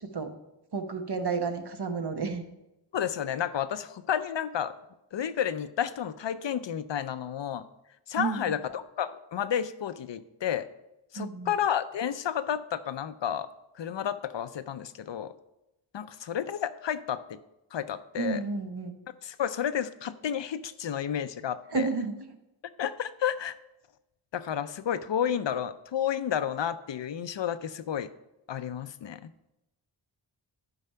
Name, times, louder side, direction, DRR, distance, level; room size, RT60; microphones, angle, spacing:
voice 1, 0.7-2.5 8.2-8.5 11.2-11.5 18.2-19.0 21.7-22.3, right 5 dB, 50° right, 6 dB, 1.1 m, -31 dB
voice 2, 2.9-4.7 5.1-7.7 8.1-10.7 11.1-13.5 13.8-15.3 15.9-17.4 17.7-18.4 19.2-21.9 22.8-23.5 24.3-28.1 28.5-29.3, left 9 dB, 60° left, 13 dB, 0.6 m, -31 dB
11.5 x 4.9 x 5.6 m, 0.94 s
wide cardioid pair, 65°, 49 cm